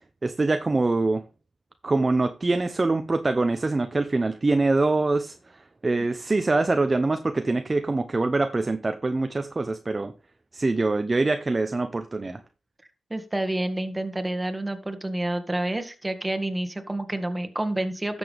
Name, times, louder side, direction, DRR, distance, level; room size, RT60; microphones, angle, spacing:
voice 1, 0.2-1.2 1.8-5.3 5.8-10.1 10.5-12.4, right 3 dB, 35° right, 0.8 m, -24 dB
voice 2, 13.1-18.2, right 1 dB, 20° right, 1.9 m, -29 dB
12.5 x 7.2 x 3.5 m
cardioid pair, 55°, 0 cm